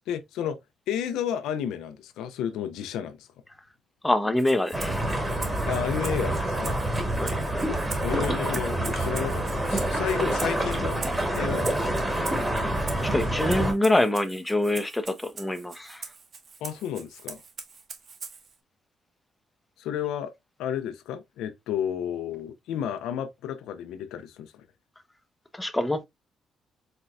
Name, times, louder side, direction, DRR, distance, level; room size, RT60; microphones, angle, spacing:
voice 1, 0.1-0.6 0.9-3.3 5.7-6.8 8.0-11.0 11.3-12.0 16.6-17.4 19.8-20.3 20.6-24.7, left 9 dB, 90° left, 0.6 m, -32 dB
voice 2, 4.0-5.0 7.2-7.3 13.0-16.0 25.5-26.1, left 1 dB, 10° left, 0.7 m, -25 dB
Rattle (instrument), 4.4-18.6, right 5 dB, 50° right, 1.0 m, -43 dB
sound 1, 4.7-13.7, right 1 dB, 10° right, 1.5 m, -27 dB
4.3 x 3.9 x 2.3 m
cardioid pair, 90°, 0 cm